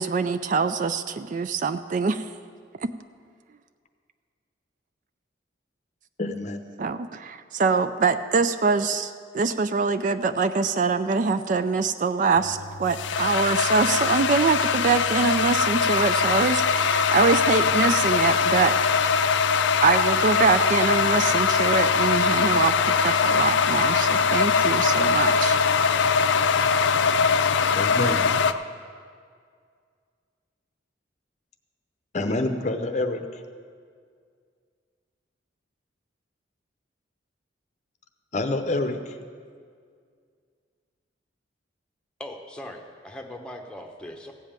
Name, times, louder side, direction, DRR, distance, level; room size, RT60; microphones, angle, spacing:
voice 1, 0.0-2.3 2.8-2.9 6.8-18.8 19.8-25.7, right 4 dB, 45° right, 11 dB, 0.3 m, -24 dB
voice 2, 6.2-6.6 27.7-28.3 32.1-33.3 38.3-39.1, left 2 dB, 40° left, 7 dB, 0.7 m, -27 dB
sound 1, 12.4-28.5, left 6 dB, 75° left, 0.5 m, -22 dB
voice 3, 42.2-44.3, left 1 dB, 5° left, 3 dB, 0.9 m, -40 dB
15.5 x 5.5 x 8.8 m, 2.1 s
head